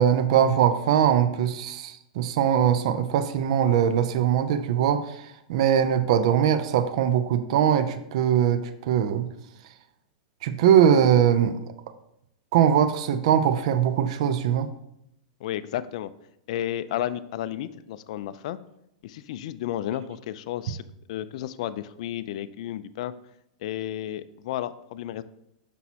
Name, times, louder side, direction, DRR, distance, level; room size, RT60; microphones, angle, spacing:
voice 1, 0.0-9.3 10.4-11.6 12.5-14.7, right 9 dB, 60° right, 10 dB, 0.5 m, -21 dB
voice 2, 15.4-16.1 16.5-18.6 19.0-20.8 21.1-23.1 23.6-25.2, left 12 dB, 65° left, 14 dB, 0.4 m, -32 dB
6.1 x 5.5 x 2.8 m, 0.80 s
supercardioid pair, 135°, 4 cm